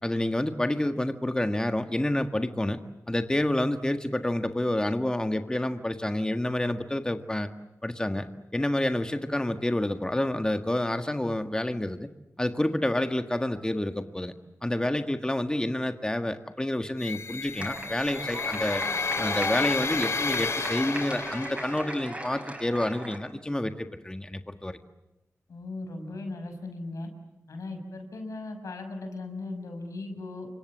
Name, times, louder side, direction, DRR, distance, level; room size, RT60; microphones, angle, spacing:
voice 1, 0.0-2.8 3.1-7.5 7.8-12.1 12.4-14.3 14.6-18.8 19.2-24.8, left 1 dB, 15° left, 7 dB, 1.6 m, -28 dB
sound 1, 17.0-22.0, left 4 dB, 60° left, 2.4 m, -31 dB
sound 2, 17.6-23.2, right 1 dB, 20° right, 7.4 m, -37 dB
voice 2, 25.5-27.1 27.5-30.5, left 2 dB, 85° left, 6 dB, 6.2 m, -37 dB
29.0 x 25.5 x 7.5 m, 0.93 s
wide cardioid pair, 80°, 5 cm